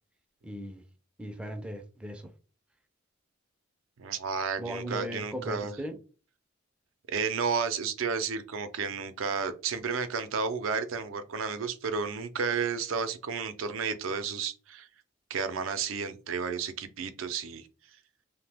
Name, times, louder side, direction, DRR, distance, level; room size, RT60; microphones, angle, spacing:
voice 1, 0.4-0.8 1.2-2.3 4.6-6.0, right 1 dB, 5° right, 0.3 m, -38 dB
voice 2, 4.0-5.7 7.1-14.9 15.3-17.7, right 5 dB, 90° right, 0.4 m, -32 dB
2.8 x 2.1 x 3.3 m
head